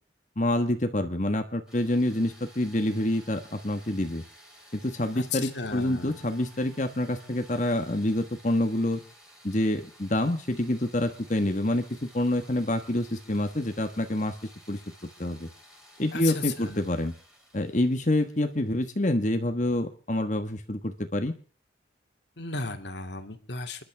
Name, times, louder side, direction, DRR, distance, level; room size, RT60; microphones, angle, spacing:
voice 1, 0.4-4.2 4.7-9.0 9.4-14.3 14.7-14.8 15.2-15.5 16.0-17.1 17.5-21.3, left 1 dB, 40° left, 7 dB, 1.4 m, -27 dB
sound 1, 1.7-19.4, equal, 5° right, 5.2 m, -54 dB
voice 2, 5.2-6.2 16.1-16.8 22.4-23.8, left 4 dB, 65° left, 6 dB, 2.5 m, -35 dB
29.5 x 11.5 x 3.5 m, 0.42 s
head